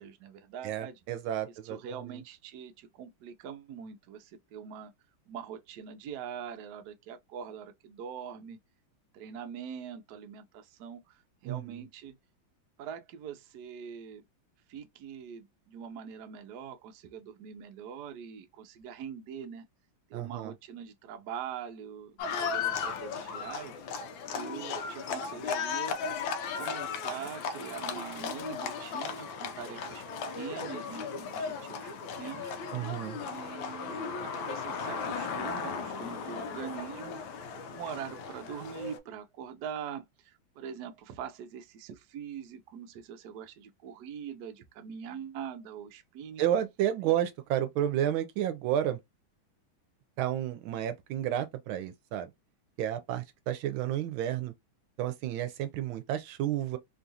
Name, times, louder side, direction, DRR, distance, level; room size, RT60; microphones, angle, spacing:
voice 1, 0.0-1.0 1.6-4.9 5.3-8.6 9.1-12.1 12.8-14.2 14.7-19.7 20.1-23.7 24.3-26.0 26.6-30.0 30.3-31.9 32.2-32.5 33.2-37.2 37.7-46.4 47.0-47.1, right 8 dB, 70° right, 1.1 m, -43 dB
voice 2, 0.6-2.2 11.4-11.8 20.1-20.5 32.7-33.2 46.4-49.0 50.2-52.3 52.8-54.5 55.0-56.8, right 11 dB, 85° right, 1.4 m, -31 dB
Livestock farm animals working animals, 22.2-39.0, left 5 dB, 75° left, 1.3 m, -36 dB
3.6 x 2.4 x 2.7 m
omnidirectional pair, 2.2 m